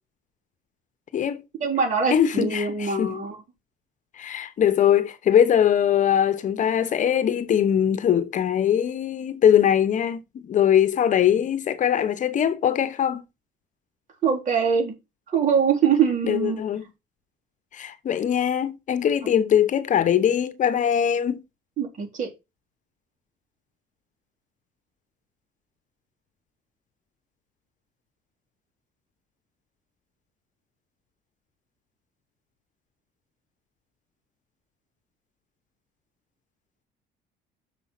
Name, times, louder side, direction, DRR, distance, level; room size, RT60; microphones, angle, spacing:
voice 1, 1.6-3.4 14.2-15.0 15.3-16.6 21.8-22.3, right 6 dB, 50° right, 3.9 m, -23 dB
voice 2, 2.1-3.2 4.2-13.2 16.2-16.9 17.7-21.4, left 9 dB, 50° left, 0.9 m, -21 dB
6.7 x 5.3 x 5.9 m
cardioid pair, 110°, 17 cm